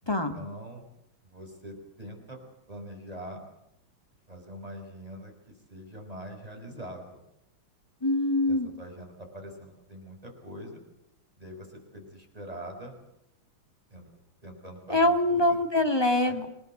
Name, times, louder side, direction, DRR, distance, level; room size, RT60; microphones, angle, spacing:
voice 1, 0.0-0.8 1.3-2.4 2.7-3.4 4.3-7.2 8.5-10.8 11.4-13.0 13.9-14.1 14.4-15.9 16.2-16.4, equal, 15° right, 2 dB, 6.0 m, -44 dB
voice 2, 8.0-8.7 14.9-16.5, left 1 dB, 10° left, 6 dB, 1.9 m, -24 dB
28.0 x 18.5 x 7.9 m, 0.82 s
omnidirectional pair, 2.3 m